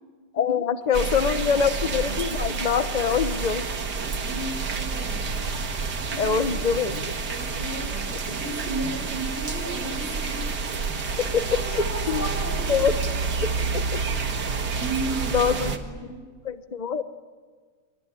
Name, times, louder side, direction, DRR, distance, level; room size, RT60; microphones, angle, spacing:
voice 1, 0.3-3.7 6.2-7.2 11.2-12.3 12.7-14.0 15.3-15.7 16.4-17.0, left 6 dB, 55° left, 11 dB, 0.4 m, -25 dB
sound 1, 0.9-15.8, right 4 dB, 50° right, 2.2 m, -29 dB
voice 2, 1.0-1.7 4.1-5.2 6.1-6.7 7.2-10.6 11.1-12.8 14.8-15.5 15.8-16.2, right 2 dB, 5° left, 1 dB, 7.7 m, -35 dB
26.0 x 23.0 x 10.0 m, 1.5 s
omnidirectional pair, 2.4 m